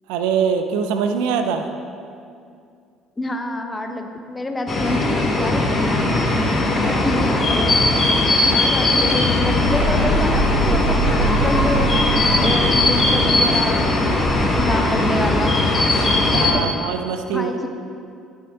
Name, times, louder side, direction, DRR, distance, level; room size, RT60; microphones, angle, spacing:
voice 1, 0.1-1.7 16.3-17.6, right 6 dB, 70° right, 7 dB, 0.4 m, -23 dB
voice 2, 3.2-5.9 6.9-7.6 8.5-15.6 16.5-16.7 17.3-17.7, left 2 dB, 20° left, 5 dB, 0.8 m, -27 dB
sound 1, 4.7-16.5, left 2 dB, 35° left, 1.1 m, -19 dB
sound 2, 9.6-15.2, right 2 dB, 90° left, 0.6 m, -25 dB
8.5 x 5.7 x 3.6 m, 2.4 s
hypercardioid pair, 55°, 0 cm